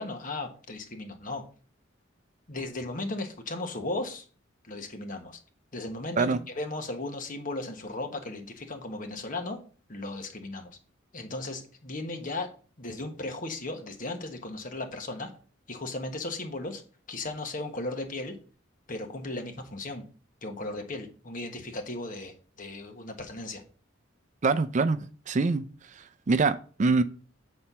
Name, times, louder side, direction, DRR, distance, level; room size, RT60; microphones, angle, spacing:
voice 1, 0.0-1.4 2.5-4.2 4.6-5.4 5.7-9.6 9.9-10.7 11.1-12.5 12.8-15.3 15.7-16.8 17.1-18.4 18.9-20.0 20.4-23.6, left 2 dB, 45° left, 1.3 m, -36 dB
voice 2, 24.4-25.0 25.3-25.7 26.0-27.0, right 3 dB, 40° right, 0.4 m, -24 dB
7.8 x 4.3 x 5.5 m
head